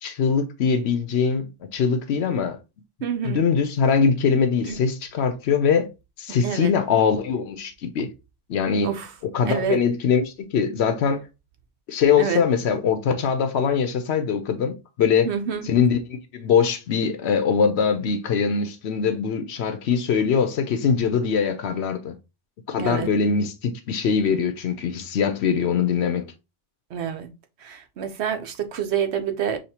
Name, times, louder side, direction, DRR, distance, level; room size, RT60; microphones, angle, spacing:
voice 1, 0.0-2.6 3.2-5.9 6.2-8.1 8.5-8.9 9.3-11.2 11.9-15.3 15.6-22.2 22.7-26.3, left 6 dB, 70° left, 0.9 m, -22 dB
voice 2, 3.0-3.5 4.6-4.8 6.4-6.7 8.8-9.1 9.5-9.8 12.2-12.4 15.2-15.7 22.8-23.1 26.9-27.3 27.6-29.6, right 8 dB, 70° right, 0.9 m, -27 dB
6.4 x 2.3 x 2.8 m
omnidirectional pair, 1.2 m